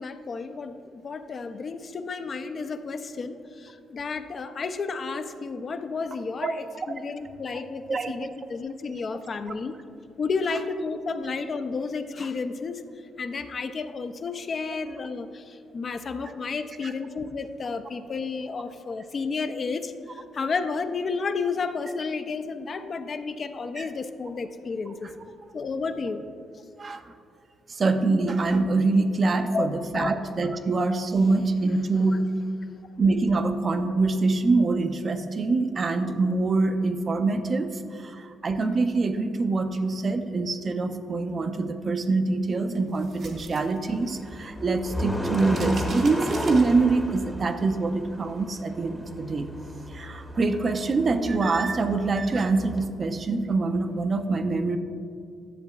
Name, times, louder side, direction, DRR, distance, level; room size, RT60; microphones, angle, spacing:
voice 1, 0.0-9.8 10.2-12.8 13.2-25.1 25.5-26.2 29.5-29.7 29.9-30.1, left 4 dB, 45° left, 9 dB, 0.4 m, -32 dB
voice 2, 26.8-27.1 27.7-32.3 33.0-49.5 49.9-54.8, right 3 dB, 40° right, 7 dB, 0.5 m, -25 dB
sound 1, 42.7-44.4 44.7-47.2, right 3 dB, 60° right, 1.0 m, -41 dB
sound 2, 43.9-52.9, equal, 5° left, 0.8 m, -34 dB
11.0 x 7.0 x 2.3 m, 2.3 s
cardioid pair, 90°, 0 cm